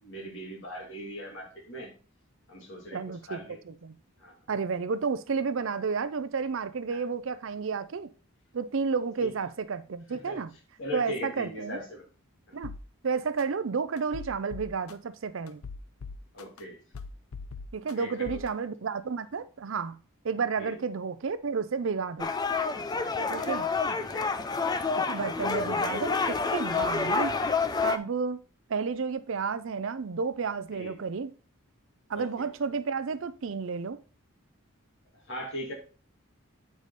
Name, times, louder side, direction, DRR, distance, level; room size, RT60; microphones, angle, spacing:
voice 1, 0.0-1.9 2.5-3.6 4.2-4.3 6.9-7.0 9.2-9.3 10.1-10.4 10.8-12.0 12.5-12.6 16.3-16.8 17.9-18.1 20.6-20.8 23.1-23.5 24.0-24.3 24.7-24.8 30.7-30.9 32.1-32.5 35.3-35.7, equal, 55° left, 2.6 m, -40 dB
voice 2, 2.9-4.0 4.5-8.1 8.5-10.5 10.9-11.8 12.5-12.7 13.0-15.6 17.7-20.0 20.2-22.3 23.3-23.7 25.1-27.4 27.8-28.4 28.7-31.3 32.1-34.0, right 5 dB, 60° right, 0.5 m, -31 dB
sound 1, 12.6-12.8 13.4-13.5 14.0-14.9 15.5-16.6 16.9-17.9 18.2-18.5, left 4 dB, 75° left, 0.6 m, -40 dB
sound 2, 22.2-28.0, left 4 dB, 20° left, 0.4 m, -28 dB
8.3 x 4.8 x 4.0 m
head